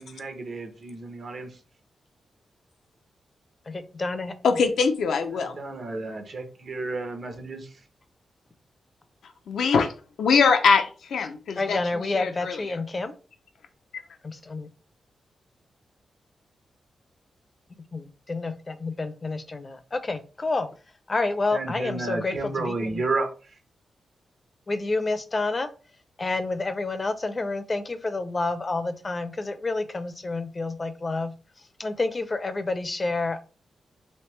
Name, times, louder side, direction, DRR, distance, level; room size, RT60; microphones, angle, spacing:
voice 1, 0.0-1.6 5.3-7.7 21.5-23.5, right 3 dB, 60° right, 6 dB, 0.8 m, -32 dB
voice 2, 3.7-4.3 11.6-13.1 14.2-14.7 17.9-20.7 21.1-23.0 24.7-25.7 26.2-31.3 31.8-33.4, left 3 dB, 35° left, 10 dB, 0.5 m, -29 dB
voice 3, 4.4-5.6 9.5-9.9 10.2-12.7, left 5 dB, 85° left, 6 dB, 0.5 m, -23 dB
3.2 x 2.8 x 3.1 m, 0.36 s
cardioid pair, 80°, 0 cm